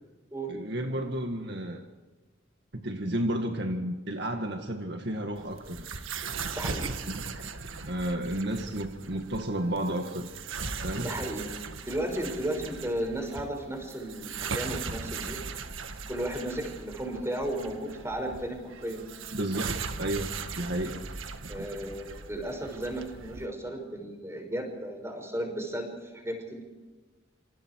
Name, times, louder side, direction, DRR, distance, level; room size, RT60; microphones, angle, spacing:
voice 1, 0.5-1.8 2.7-5.9 7.1-7.5 7.9-10.3 10.8-11.1 19.3-21.0 21.4-21.7, right 1 dB, 55° right, 4 dB, 2.0 m, -32 dB
sound 1, 5.4-23.5, right 5 dB, 85° right, 1.7 m, -39 dB
voice 2, 6.5-6.9 11.0-11.5 11.9-15.4 16.1-19.0 21.5-26.6, right 1 dB, 15° right, 4 dB, 5.9 m, -34 dB
28.5 x 28.0 x 4.8 m, 1.3 s
head